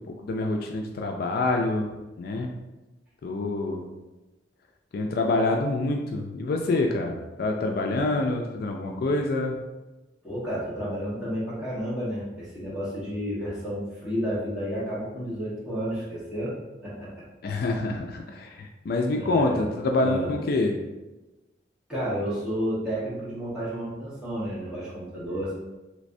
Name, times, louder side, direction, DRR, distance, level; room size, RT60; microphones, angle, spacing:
voice 1, 0.1-1.9 2.2-2.5 3.2-3.9 4.9-9.5 17.4-20.8, left 2 dB, 55° left, 2 dB, 0.3 m, -26 dB
voice 2, 10.2-16.6 16.8-17.2 19.0-19.6 20.0-20.3 21.9-25.5, equal, 5° right, -10 dB, 1.3 m, -31 dB
3.3 x 3.1 x 2.6 m, 1.1 s
head